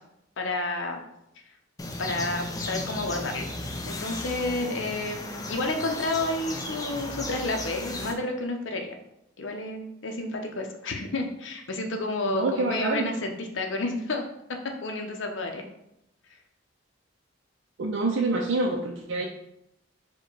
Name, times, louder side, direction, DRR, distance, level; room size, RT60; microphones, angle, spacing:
voice 1, 0.4-1.0 2.0-3.5 3.8-8.9 9.4-14.2 14.8-15.6, left 2 dB, 65° left, 3 dB, 0.6 m, -30 dB
sound 1, 1.8-8.1, left 2 dB, 20° left, 0.4 m, -35 dB
voice 2, 12.3-13.1 17.8-19.3, right 3 dB, 65° right, 0 dB, 0.4 m, -26 dB
4.6 x 2.2 x 4.6 m, 0.81 s
head